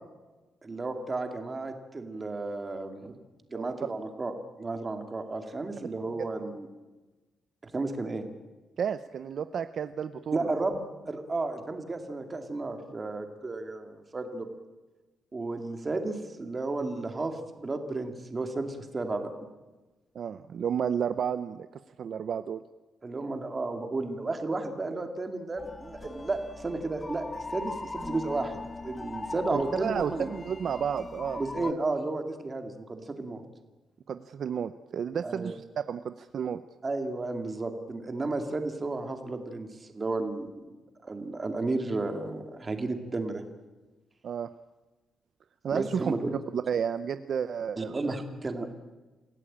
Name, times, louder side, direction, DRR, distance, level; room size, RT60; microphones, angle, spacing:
voice 1, 0.6-3.2 3.5-4.3 4.6-6.7 7.6-8.2 10.3-14.5 15.3-19.3 23.0-30.3 31.4-33.4 35.2-35.5 36.8-40.7 41.0-43.4 45.7-46.3 47.8-48.7, right 3 dB, 20° right, 6 dB, 2.4 m, -33 dB
voice 2, 8.8-10.5 20.1-21.7 22.0-22.6 29.5-31.8 34.1-36.6 44.2-44.5 45.6-46.1 46.5-48.0, right 7 dB, 50° right, 11 dB, 0.7 m, -32 dB
sound 1, 25.6-31.7, left 3 dB, 15° left, 0.9 m, -40 dB
27.5 x 16.5 x 8.8 m, 1.2 s
cardioid pair, 155°, 0 cm